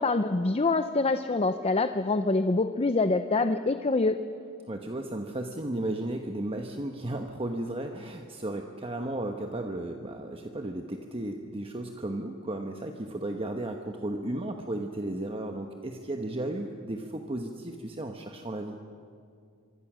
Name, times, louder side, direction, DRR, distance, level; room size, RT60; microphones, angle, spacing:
voice 1, 0.0-4.2, left 3 dB, 30° left, 9 dB, 0.6 m, -25 dB
voice 2, 4.7-18.8, right 1 dB, 25° right, 3 dB, 1.1 m, -34 dB
25.0 x 24.0 x 6.3 m, 2.3 s
head